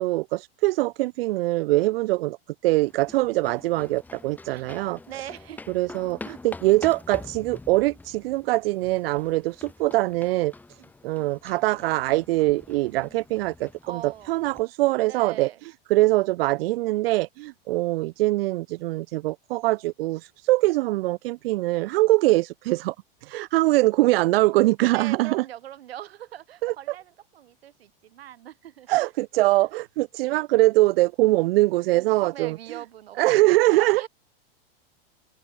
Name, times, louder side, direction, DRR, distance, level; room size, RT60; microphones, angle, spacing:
voice 1, 0.0-2.4 2.6-5.0 5.7-10.5 11.0-15.5 15.9-22.9 23.2-25.4 26.6-26.7 28.9-32.6 33.2-34.0, right 19 dB, 75° right, 0.5 m, -23 dB
sound 1, 2.8-14.6, left 3 dB, 5° left, 0.5 m, -46 dB
voice 2, 5.1-5.6 13.8-14.3 15.0-15.6 24.9-29.1 31.6-34.1, right 12 dB, 90° right, 3.1 m, -41 dB
open air
supercardioid pair, 125°, 30 cm